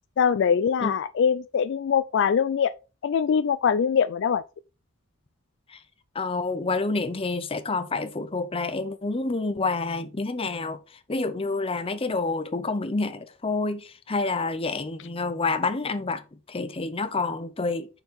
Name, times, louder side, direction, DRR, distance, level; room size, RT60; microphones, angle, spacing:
voice 1, 0.2-2.7 3.0-4.4, left 7 dB, 60° left, 0.3 m, -23 dB
voice 2, 6.1-10.8 11.1-16.2 16.5-17.9, left 3 dB, 25° left, 0.7 m, -28 dB
6.6 x 4.5 x 4.2 m
head